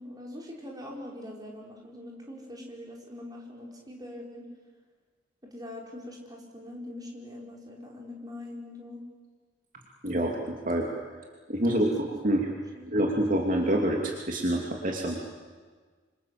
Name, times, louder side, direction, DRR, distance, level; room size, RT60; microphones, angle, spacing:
voice 1, 0.0-4.5 5.5-9.0 11.7-11.8 12.8-12.9, left 1 dB, 20° right, -1 dB, 5.4 m, -43 dB
voice 2, 10.0-10.4 10.6-10.9 11.5-11.8 12.2-12.5 12.9-15.2, right 1 dB, 45° right, 1 dB, 2.9 m, -26 dB
27.0 x 27.0 x 7.8 m, 1.5 s
head